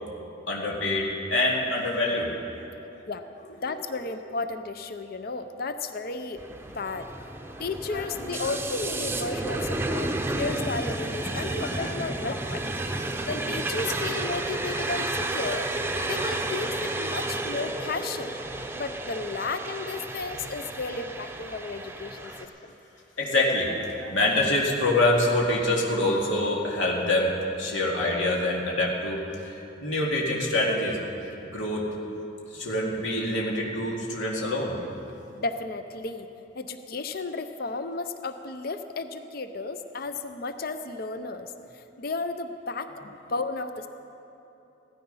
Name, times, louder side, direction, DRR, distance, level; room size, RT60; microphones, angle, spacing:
voice 1, 0.5-2.3 7.9-8.0 8.3-8.4 11.4-11.9 22.2-22.3 23.2-27.3 27.6-29.2 29.5-31.0 31.5-31.9 32.5-34.8, left 1 dB, 85° left, -2 dB, 2.4 m, -26 dB
voice 2, 3.6-7.1 7.6-12.6 13.3-15.7 16.0-18.4 18.7-22.7 35.3-36.3 36.5-43.9, left 3 dB, 50° left, 9 dB, 0.6 m, -33 dB
sound 1, 6.4-22.4, right 2 dB, 10° right, 0.7 m, -32 dB
16.0 x 13.5 x 5.6 m, 3.0 s
head